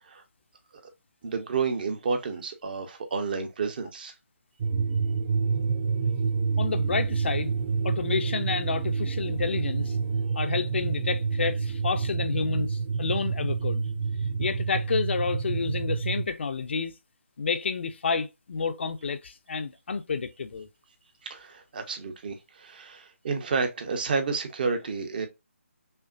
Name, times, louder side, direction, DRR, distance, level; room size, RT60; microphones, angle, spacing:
voice 1, 1.2-4.1 21.2-25.3, right 5 dB, 40° right, 0.8 m, -30 dB
sound 1, 4.6-16.2, right 5 dB, 20° right, 0.3 m, -28 dB
voice 2, 6.6-7.5 7.8-10.0 10.3-13.8 14.4-16.9 17.4-20.7, left 5 dB, 50° left, 0.5 m, -30 dB
5.5 x 2.1 x 2.5 m
figure-of-eight pair, 155°, 8 cm